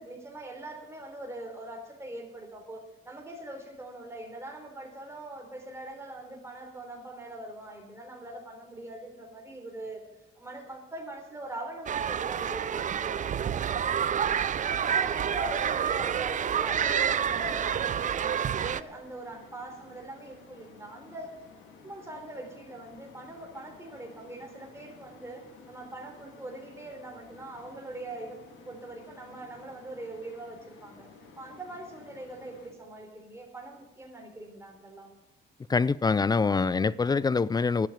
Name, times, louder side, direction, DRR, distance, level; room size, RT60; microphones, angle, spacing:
voice 1, 0.0-10.0 10.4-14.3 14.8-21.3 21.8-28.4 28.7-31.1 31.4-35.1, right 1 dB, 15° right, 3.6 m, -42 dB
sound 1, 11.9-18.8, right 8 dB, 40° right, 0.5 m, -28 dB
sound 2, 14.7-32.7, left 5 dB, 90° left, 2.3 m, -54 dB
voice 2, 35.7-37.9, left 4 dB, 20° left, 0.3 m, -25 dB
12.0 x 7.9 x 9.0 m
cardioid pair, 90°, 20 cm